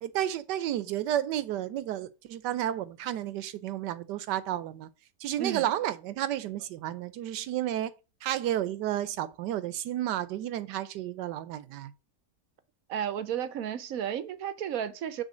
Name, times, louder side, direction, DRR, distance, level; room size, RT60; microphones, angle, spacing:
voice 1, 0.0-4.9 5.2-7.9 8.2-11.9, right 12 dB, 85° right, 1.3 m, -32 dB
voice 2, 5.4-5.7 12.9-15.2, right 9 dB, 65° right, 1.0 m, -33 dB
6.3 x 3.6 x 6.2 m
omnidirectional pair, 1.8 m